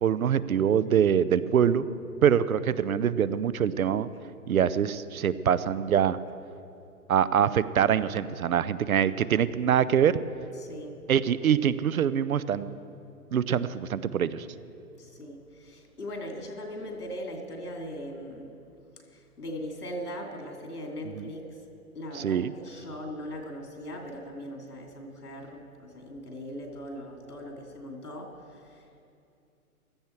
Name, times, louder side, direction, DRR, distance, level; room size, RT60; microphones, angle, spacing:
voice 1, 0.0-1.9 2.2-4.1 4.5-6.2 7.1-10.2 11.1-12.7 13.3-14.5 21.2-21.3 22.1-22.5, right 8 dB, 65° right, 16 dB, 0.7 m, -24 dB
voice 2, 10.6-10.9 15.0-18.5 19.1-21.5 21.9-28.8, equal, 85° left, 2 dB, 2.8 m, -39 dB
15.5 x 13.5 x 4.5 m, 2.6 s
figure-of-eight pair, 130°, 45 cm